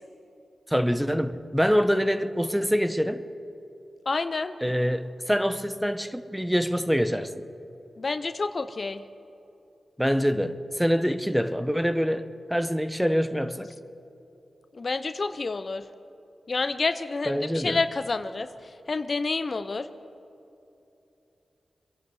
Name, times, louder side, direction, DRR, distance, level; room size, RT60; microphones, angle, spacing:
voice 1, 0.7-3.2 4.6-7.5 10.0-13.7 17.2-17.8, equal, 5° right, 0.9 m, -25 dB
voice 2, 4.1-4.5 8.0-9.0 14.7-15.8 16.5-18.5 18.9-19.9, left 3 dB, 55° left, 0.6 m, -28 dB
25.0 x 11.5 x 4.8 m
cardioid pair, 45°, 0 cm